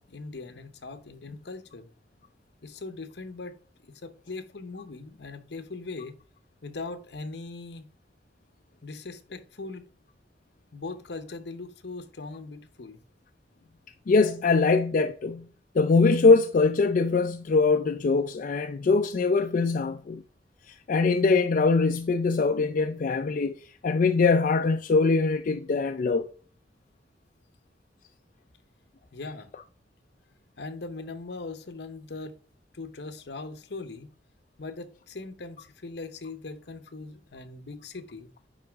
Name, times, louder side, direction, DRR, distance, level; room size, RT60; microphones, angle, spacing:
voice 1, 0.0-1.9 2.6-3.6 3.9-6.1 6.6-7.9 8.8-9.8 10.7-13.0 29.1-29.5 30.6-32.4 32.7-34.1 34.6-38.3, left 3 dB, 65° left, 0.8 m, -40 dB
voice 2, 14.1-15.5 15.7-20.2 20.7-26.3, left 4 dB, 45° left, 0.4 m, -23 dB
10.0 x 3.9 x 3.5 m
head